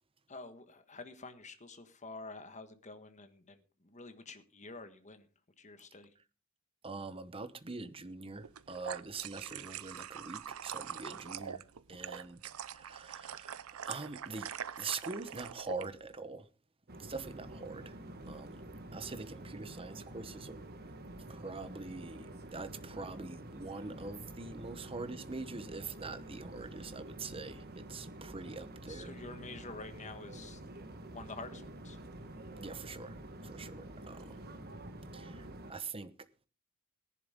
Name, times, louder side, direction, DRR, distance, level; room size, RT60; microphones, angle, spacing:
voice 1, 0.3-5.3 5.6-6.1 28.9-30.6 31.1-32.0, left 3 dB, 35° left, 1.5 m, -48 dB
voice 2, 6.8-14.5 14.8-16.5 17.0-18.6 18.9-20.7 21.3-29.1 32.6-34.4 35.1-36.5, right 3 dB, 25° right, 1.0 m, -44 dB
sound 1, 8.4-15.9, right 8 dB, 75° right, 0.6 m, -43 dB
sound 2, 16.9-35.7, right 1 dB, 45° right, 1.4 m, -48 dB
18.0 x 11.0 x 3.7 m
head